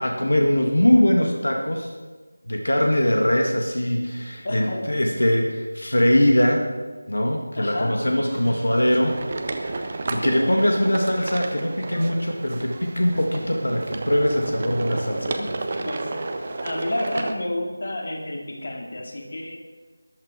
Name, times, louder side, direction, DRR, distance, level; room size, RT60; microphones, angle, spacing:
voice 1, 0.0-1.9 2.5-6.7 7.1-9.2 9.7-15.9, left 1 dB, 60° left, 2 dB, 2.0 m, -22 dB
voice 2, 4.4-4.9 7.6-8.0 8.4-8.5 15.8-19.6, left 1 dB, 40° left, 2 dB, 2.2 m, -30 dB
sound 1, 8.3-17.3, right 2 dB, 30° right, 0.9 m, -32 dB
14.0 x 11.5 x 5.1 m, 1.4 s
figure-of-eight pair, 165°, 0 cm